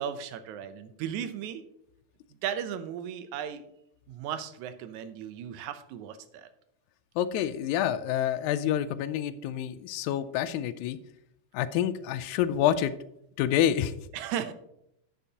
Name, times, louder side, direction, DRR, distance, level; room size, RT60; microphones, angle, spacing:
voice 1, 0.0-1.6 2.4-3.6 4.1-6.5 14.1-14.5, right 9 dB, 80° right, 11 dB, 2.0 m, -36 dB
voice 2, 7.2-11.0 11.5-12.9 13.4-14.1, left 10 dB, 85° left, 14 dB, 1.9 m, -27 dB
10.5 x 8.3 x 2.8 m, 0.78 s
omnidirectional pair, 3.4 m